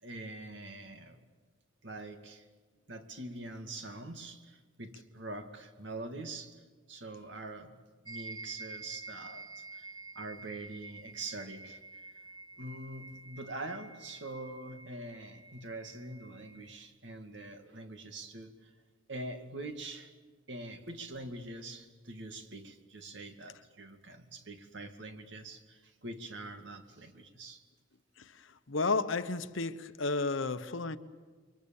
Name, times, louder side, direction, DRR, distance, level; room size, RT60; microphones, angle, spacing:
voice 1, 0.0-1.2 1.8-2.5 2.9-6.6 6.9-7.7 8.0-9.9 10.2-12.0 12.6-18.7 19.1-20.1 20.5-27.6, right 2 dB, 60° right, 2.3 m, -44 dB
sound 1, 8.1-16.7, right 3 dB, 20° right, 1.9 m, -49 dB
voice 2, 28.7-31.0, left 3 dB, 75° left, 1.0 m, -32 dB
29.0 x 24.0 x 7.2 m
head